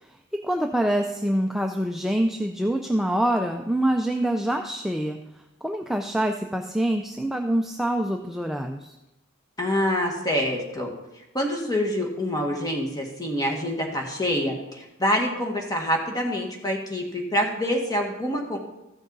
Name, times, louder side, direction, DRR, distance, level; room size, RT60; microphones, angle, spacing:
voice 1, 0.3-5.2 5.6-8.9, right 1 dB, ahead, 3 dB, 0.4 m, -25 dB
voice 2, 9.6-10.9 11.3-18.6, equal, 20° left, 1 dB, 1.6 m, -26 dB
14.5 x 6.2 x 4.0 m, 0.95 s
head